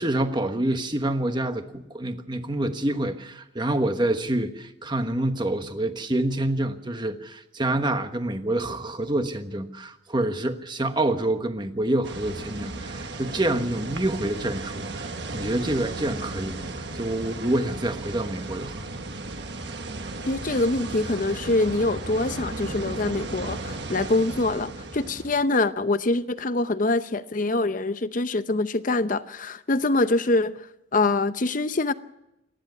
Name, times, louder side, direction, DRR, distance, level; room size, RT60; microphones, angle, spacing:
voice 1, 0.0-18.8, right 1 dB, 25° right, 1.3 m, -27 dB
sound 1, 12.0-25.4, right 2 dB, 60° right, 1.5 m, -35 dB
voice 2, 20.3-30.7 30.9-31.9, left 2 dB, 45° left, 0.8 m, -24 dB
27.0 x 10.5 x 9.5 m
head